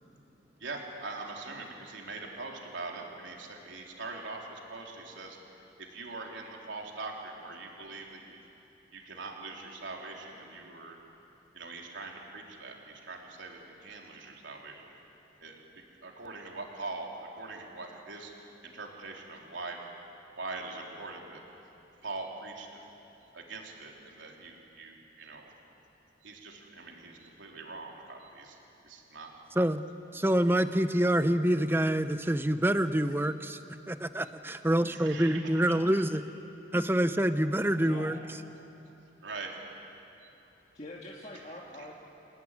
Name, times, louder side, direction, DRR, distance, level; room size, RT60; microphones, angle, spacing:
voice 1, 0.6-5.4 5.9-8.4 8.9-11.0 11.5-14.9 15.4-18.3 18.6-19.8 20.4-21.4 22.0-22.8 23.3-25.5 26.2-28.6 28.8-29.3 34.9-35.8 39.2-39.5 40.2-40.3 41.8-41.9, right 3 dB, 85° right, 0 dB, 3.6 m, -42 dB
voice 2, 30.1-33.6 33.9-36.2 36.7-38.2, right 1 dB, 10° right, 10 dB, 0.8 m, -26 dB
voice 3, 37.8-38.1 40.7-41.9, left 1 dB, 35° left, -3 dB, 2.1 m, -44 dB
28.5 x 18.0 x 9.9 m, 2.9 s
head